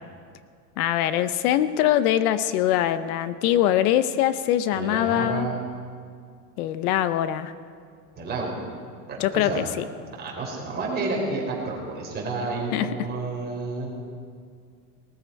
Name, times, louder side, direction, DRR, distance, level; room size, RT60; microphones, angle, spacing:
voice 1, 0.8-5.5 6.6-7.5 9.2-9.8 12.7-12.9, left 12 dB, 75° left, 13 dB, 0.8 m, -23 dB
voice 2, 4.7-5.6 8.2-8.6 9.1-9.6 10.1-13.9, right 3 dB, 20° right, -2 dB, 3.6 m, -30 dB
19.5 x 13.5 x 4.7 m, 2.2 s
supercardioid pair, 160°, 44 cm